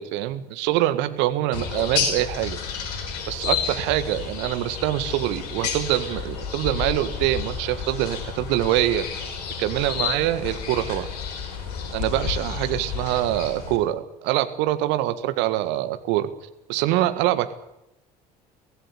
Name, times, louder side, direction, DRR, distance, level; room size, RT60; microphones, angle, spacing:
voice 1, 0.0-2.6 3.3-9.1 9.6-11.1 11.9-16.3 16.7-17.5, right 14 dB, 65° right, 11 dB, 1.7 m, -24 dB
sound 1, 1.5-13.8, left 7 dB, 70° left, 4.7 m, -31 dB
23.5 x 16.0 x 8.4 m, 0.87 s
figure-of-eight pair, 55°, 20 cm